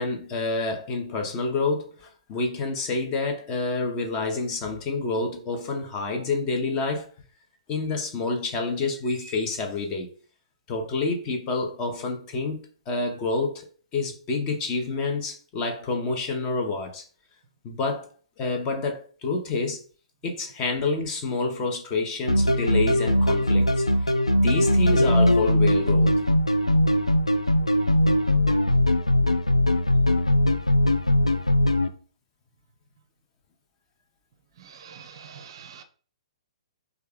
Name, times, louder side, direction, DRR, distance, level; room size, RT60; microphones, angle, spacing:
voice 1, 0.0-7.1 7.7-10.1 10.7-13.7 13.9-17.0 17.6-18.1 18.4-19.8 20.2-26.1, left 3 dB, 25° left, 0.7 m, -28 dB
sound 1, 22.3-31.9, left 1 dB, 85° left, 0.4 m, -20 dB
voice 2, 34.6-35.8, right 7 dB, 50° right, 0.5 m, -45 dB
3.3 x 2.3 x 3.5 m
figure-of-eight pair, 120°, 3 cm